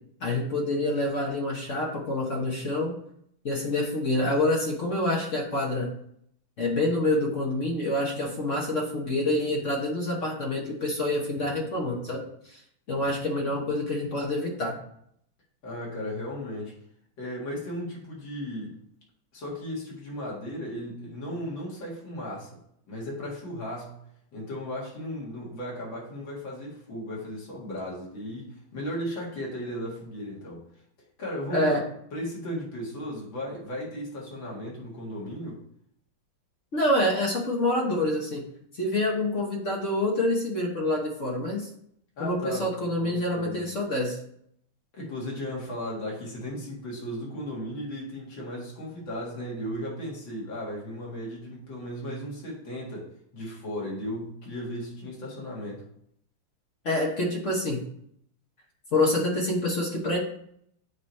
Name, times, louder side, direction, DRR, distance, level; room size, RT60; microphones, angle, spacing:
voice 1, 0.2-3.0 3.4-5.9 6.6-12.6 12.9-14.7 31.5-31.8 36.7-38.4 38.7-41.7 42.2-44.2 56.8-57.8 58.9-60.2, left 1 dB, 45° left, -1 dB, 1.1 m, -27 dB
voice 2, 15.6-16.7 17.2-18.8 19.3-22.6 22.9-24.1 24.3-30.6 31.2-31.8 32.1-35.6 42.2-43.6 44.9-55.9, equal, 60° left, -4 dB, 2.7 m, -36 dB
8.6 x 3.1 x 4.1 m, 0.70 s
omnidirectional pair, 2.3 m